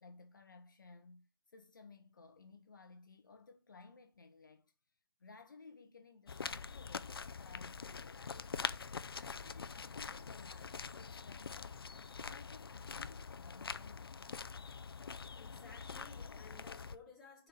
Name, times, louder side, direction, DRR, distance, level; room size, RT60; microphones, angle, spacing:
voice 1, 0.0-4.7 5.2-8.9 9.2-12.0 12.3-14.4, left 4 dB, 60° left, 1.0 m, -59 dB
sound 1, 6.3-17.0, left 5 dB, 80° left, 0.6 m, -44 dB
voice 2, 15.4-17.5, left 5 dB, ahead, 2.7 m, -57 dB
6.2 x 4.5 x 6.6 m
hypercardioid pair, 170°, 12 cm